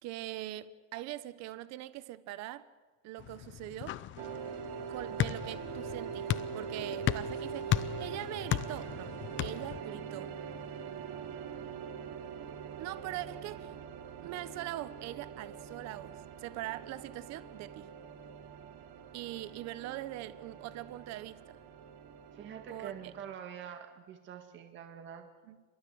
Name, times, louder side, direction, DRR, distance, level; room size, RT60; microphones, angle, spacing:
voice 1, 0.0-2.7 3.0-4.0 4.9-10.3 12.8-13.7 14.2-17.9 19.1-21.6 22.7-23.1 25.4-25.6, right 15 dB, 50° right, 1.2 m, -42 dB
sound 1, 3.2-9.8, left 12 dB, 35° left, 0.7 m, -36 dB
sound 2, 4.2-23.2, right 7 dB, 65° right, 3.3 m, -43 dB
voice 2, 22.3-25.3, right 8 dB, 35° right, 1.8 m, -45 dB
29.0 x 23.0 x 8.0 m
cardioid pair, 170°, 36 cm